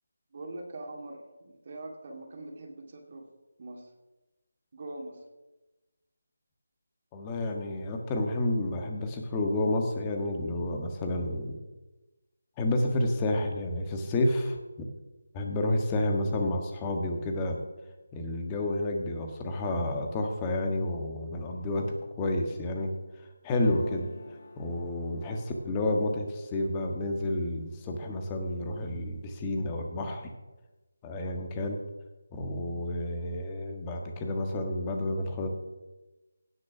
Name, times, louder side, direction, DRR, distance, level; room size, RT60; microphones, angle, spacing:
voice 1, 0.3-3.3 3.6-3.9 4.7-5.2, right 2 dB, 40° right, 2 dB, 2.3 m, -42 dB
voice 2, 7.1-11.6 12.6-14.6 15.3-17.6 18.1-30.3 31.0-31.8 32.3-35.5, left 1 dB, 15° left, 2 dB, 1.5 m, -30 dB
sound 1, 23.6-27.5 27.9-28.5 28.8-29.6, left 3 dB, 40° left, 1.2 m, -49 dB
17.0 x 6.2 x 6.2 m, 1.1 s
figure-of-eight pair, 165°, 0 cm